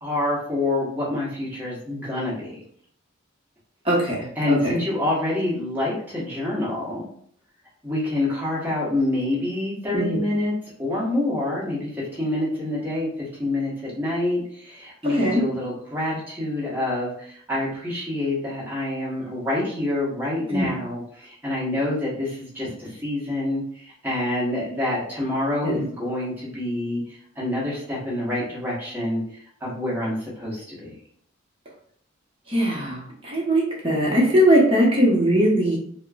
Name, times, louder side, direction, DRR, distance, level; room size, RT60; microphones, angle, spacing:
voice 1, 0.0-2.6 4.4-7.0 7.8-10.5 10.8-31.0, left 1 dB, 10° right, -7 dB, 1.2 m, -27 dB
voice 2, 3.8-4.7 9.9-10.2 15.2-15.4 20.5-20.7 25.6-25.8 32.5-35.8, equal, 30° right, -4 dB, 0.9 m, -20 dB
4.3 x 2.2 x 2.3 m, 0.63 s
head